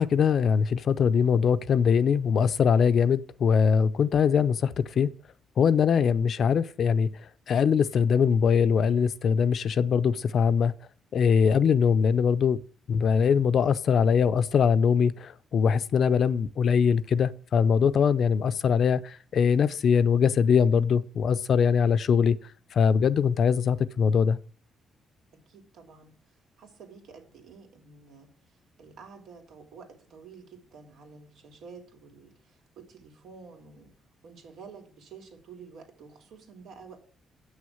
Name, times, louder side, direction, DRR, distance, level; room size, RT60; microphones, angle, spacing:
voice 1, 0.0-5.1 5.6-7.1 7.5-10.7 11.1-12.6 12.9-22.4 22.7-24.4, left 6 dB, 60° left, 0.6 m, -22 dB
voice 2, 25.3-26.1 26.6-28.3 28.8-33.9 34.2-37.0, right 5 dB, 80° right, 3.1 m, -49 dB
7.9 x 6.4 x 7.9 m
cardioid pair, 90°, 0 cm